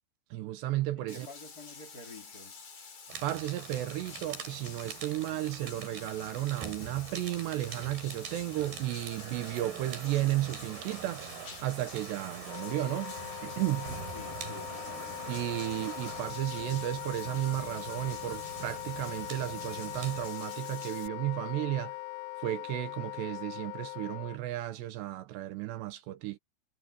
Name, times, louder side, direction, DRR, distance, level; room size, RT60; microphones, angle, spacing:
voice 1, 0.3-1.3 3.2-11.4 11.6-13.1 13.4-13.9 15.3-22.0 22.4-26.4, right 15 dB, 80° right, 3.0 m, -33 dB
voice 2, 0.9-2.6 14.1-14.8, left 2 dB, 25° left, 2.9 m, -49 dB
Bathtub (filling or washing), 1.1-21.1, left 5 dB, 45° left, 5.8 m, -49 dB
sound 1, 3.1-20.3, right 7 dB, 60° right, 5.0 m, -45 dB
Wind instrument woodwind instrument, 12.4-24.4, left 20 dB, 80° left, 2.7 m, -41 dB
omnidirectional pair, 5.2 m